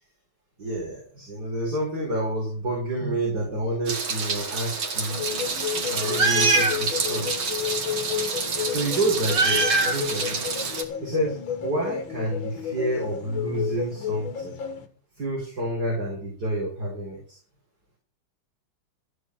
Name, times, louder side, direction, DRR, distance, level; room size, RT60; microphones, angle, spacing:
voice 1, 0.6-5.2 5.9-7.7 8.7-10.5 11.0-14.5 15.2-17.4, right 1 dB, 50° right, -3 dB, 5.2 m, -29 dB
Meow, 3.9-10.8, right 3 dB, 85° right, 3.0 m, -26 dB
sound 1, 5.1-14.9, left 9 dB, 80° left, 2.6 m, -32 dB
14.0 x 10.5 x 6.5 m, 0.43 s
omnidirectional pair, 2.2 m